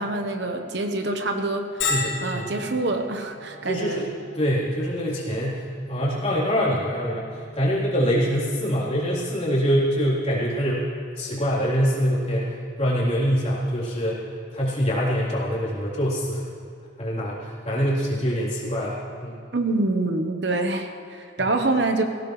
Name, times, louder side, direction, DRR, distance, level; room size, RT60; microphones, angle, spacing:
voice 1, 0.0-1.8 2.2-4.1 19.5-22.0, right 2 dB, 60° right, 5 dB, 1.0 m, -26 dB
Bell, 1.8-17.2, left 3 dB, 80° left, 4.5 m, -38 dB
voice 2, 1.8-2.4 3.7-4.1 4.3-7.2 7.5-10.8 11.2-12.5 12.8-14.2 14.5-16.4 17.0-19.3 21.4-21.5, equal, 30° left, -7 dB, 3.6 m, -24 dB
19.5 x 16.5 x 3.2 m, 2.6 s
head